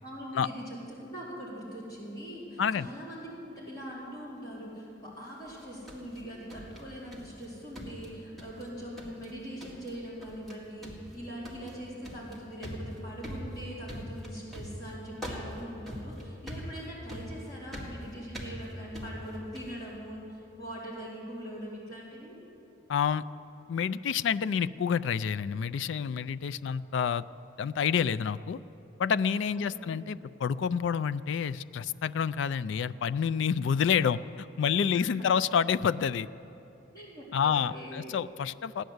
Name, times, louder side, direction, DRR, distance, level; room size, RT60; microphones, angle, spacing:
voice 1, 0.0-22.3 29.5-30.1 34.9-35.2 36.9-38.1, equal, 20° left, -8 dB, 4.0 m, -42 dB
sound 1, 5.5-7.5 7.8-8.7 9.0-9.3 9.6-10.0 10.2-10.6 10.8-19.8, equal, ahead, 2.0 m, -42 dB
voice 2, 22.9-23.2 23.7-27.2 27.6-28.6 29.0-36.3 37.3-38.8, left 7 dB, 65° left, 14 dB, 0.3 m, -28 dB
16.0 x 10.5 x 7.9 m, 2.9 s
head